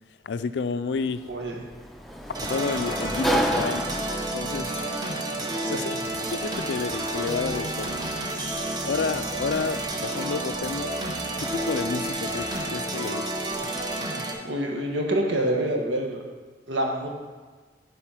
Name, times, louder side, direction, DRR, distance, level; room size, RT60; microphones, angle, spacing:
voice 1, 0.2-1.2 2.5-3.9 4.3-4.7 5.7-6.0 6.3-7.9 8.8-11.0 11.4-13.3, left 5 dB, 70° left, 13 dB, 0.4 m, -30 dB
Sliding door, 0.9-13.6, right 1 dB, ahead, 0.4 m, -35 dB
sound 1, 2.3-14.3, right 1 dB, 25° right, 0.8 m, -30 dB
voice 2, 5.6-6.0 14.4-16.2 16.7-17.1, right 1 dB, 85° right, 0 dB, 1.5 m, -27 dB
sound 2, 6.0-14.0, right 1 dB, 40° right, 2.1 m, -47 dB
10.5 x 4.2 x 5.8 m, 1.4 s
head